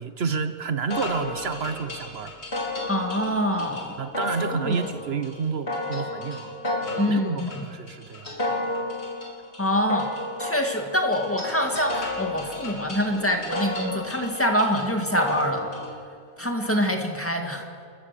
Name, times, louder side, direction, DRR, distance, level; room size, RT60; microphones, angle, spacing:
voice 1, 0.0-2.3 4.0-6.6 6.8-7.4 7.7-8.3, right 5 dB, 65° right, 10 dB, 1.1 m, -30 dB
sound 1, 0.9-15.9, left 2 dB, 75° left, 3.8 m, -32 dB
voice 2, 2.9-4.0 4.5-4.9 7.0-7.7 9.6-10.1 10.4-15.7 16.4-17.7, equal, 10° left, 2 dB, 1.9 m, -25 dB
29.5 x 14.0 x 6.8 m, 2.3 s
omnidirectional pair, 1.1 m